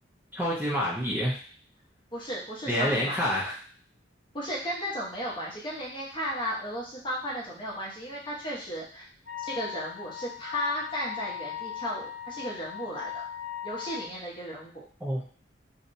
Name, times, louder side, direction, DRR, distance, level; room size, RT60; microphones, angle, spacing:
voice 1, 0.3-1.3 2.7-3.5 15.0-15.3, equal, 10° right, -7 dB, 0.4 m, -27 dB
voice 2, 2.1-3.3 4.3-9.0 9.4-13.2 13.6-14.9, equal, 25° left, -5 dB, 0.7 m, -35 dB
Wind instrument woodwind instrument, 9.3-14.1, left 10 dB, 60° left, 0.5 m, -38 dB
2.7 x 2.1 x 2.5 m, 0.44 s
head